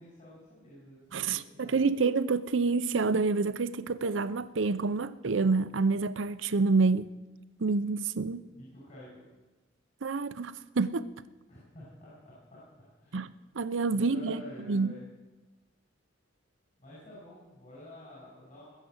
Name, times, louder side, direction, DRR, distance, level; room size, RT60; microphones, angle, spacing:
voice 1, 0.0-1.9 8.5-9.3 11.5-13.1 13.9-15.0 16.8-18.7, left 1 dB, 40° left, 5.9 m, -49 dB
voice 2, 1.1-7.1 7.6-8.5 10.0-11.1 13.1-13.3 13.5-14.4 14.7-14.9, right 4 dB, 75° right, 0.6 m, -28 dB
20.5 x 7.5 x 7.9 m
head